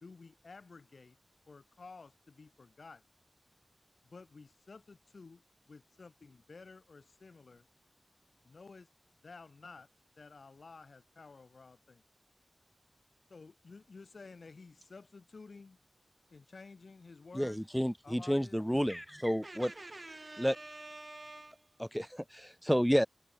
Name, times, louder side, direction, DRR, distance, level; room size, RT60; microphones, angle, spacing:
voice 1, 0.0-1.2 1.5-3.0 4.0-5.4 5.7-7.6 8.4-8.9 9.2-9.9 10.2-12.0 13.3-15.8 16.3-17.6 18.0-18.6, left 4 dB, 80° left, 2.7 m, -53 dB
voice 2, 17.3-19.7 20.4-20.5 21.8-23.1, equal, ahead, 0.5 m, -30 dB
voice 3, 19.4-21.8, right 2 dB, 35° right, 6.4 m, -48 dB
wide cardioid pair, 75°, 0 cm